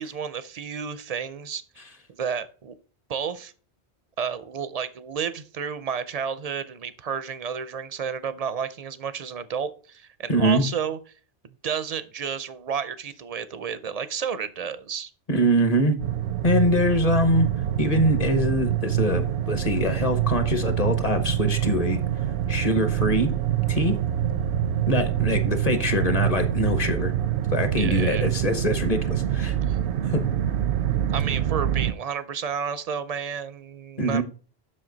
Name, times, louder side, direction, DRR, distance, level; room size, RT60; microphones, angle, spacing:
voice 1, 0.0-1.6 2.2-2.7 3.1-3.5 4.2-11.0 11.4-15.1 27.8-28.3 29.7-29.8 31.1-34.2, right 7 dB, 50° right, 14 dB, 0.5 m, -31 dB
voice 2, 10.3-10.6 15.3-16.0 16.4-17.5 17.8-22.0 22.5-23.3 23.7-24.0 24.9-27.1 27.5-29.6 30.1-30.2 34.0-34.2, equal, 40° left, 9 dB, 1.0 m, -23 dB
sound 1, 16.0-31.9, right 11 dB, 80° right, 0.8 m, -25 dB
7.6 x 6.2 x 3.9 m, 0.39 s
omnidirectional pair, 1.1 m